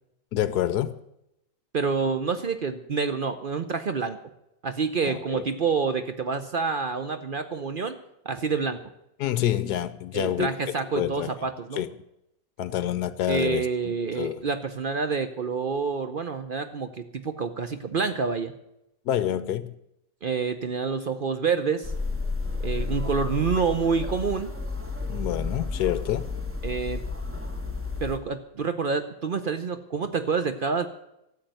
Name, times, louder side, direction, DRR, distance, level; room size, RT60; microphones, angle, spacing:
voice 1, 0.3-0.9 5.1-5.5 9.2-11.3 11.7-11.9 12.6-14.4 19.1-19.7 25.1-26.2, left 12 dB, 70° left, 1.1 m, -28 dB
voice 2, 1.7-4.2 4.6-8.0 8.2-8.8 10.1-11.8 13.3-18.5 20.2-21.9 22.6-24.5 26.6-27.0 28.0-30.9, right 5 dB, 60° right, 0.5 m, -27 dB
sound 1, 21.8-28.2, left 3 dB, 10° right, 0.9 m, -31 dB
13.0 x 7.7 x 9.2 m
omnidirectional pair, 1.9 m